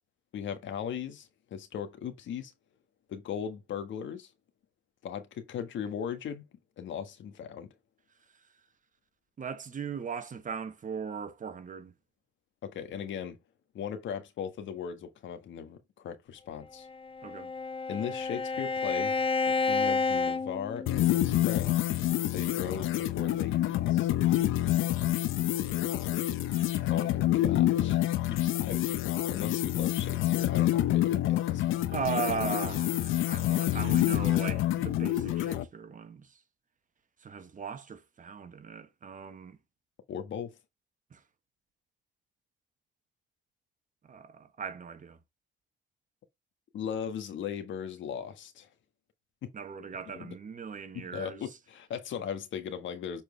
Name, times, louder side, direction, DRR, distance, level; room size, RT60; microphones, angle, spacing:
voice 1, 0.3-2.5 3.1-4.3 5.0-6.4 6.8-7.7 12.6-13.4 13.7-16.9 17.9-19.2 19.7-21.8 22.2-24.1 26.9-31.9 40.1-40.5 46.7-48.7 50.1-50.3 50.9-53.2, left 8 dB, 70° left, 1.4 m, -38 dB
voice 2, 9.4-11.9 17.2-17.5 26.0-26.1 26.5-26.9 31.9-36.3 37.2-39.6 41.1-41.2 44.0-45.2 49.5-51.5, right 6 dB, 40° right, 1.3 m, -38 dB
Bowed string instrument, 16.8-21.3, left 4 dB, 25° left, 0.6 m, -30 dB
sound 1, 20.9-35.7, left 13 dB, 90° left, 0.8 m, -27 dB
7.4 x 4.4 x 3.3 m
cardioid pair, 90°, 20 cm